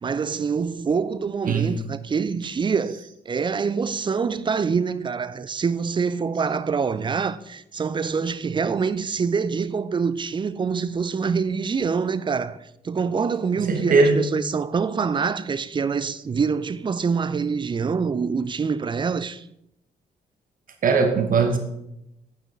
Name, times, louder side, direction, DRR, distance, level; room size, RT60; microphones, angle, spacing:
voice 1, 0.0-3.0 3.3-19.5, right 5 dB, 25° right, 0.5 m, -25 dB
voice 2, 13.7-14.2 20.8-21.6, right 4 dB, 40° right, 1.3 m, -19 dB
9.0 x 8.9 x 3.7 m
figure-of-eight pair, 40°, 21 cm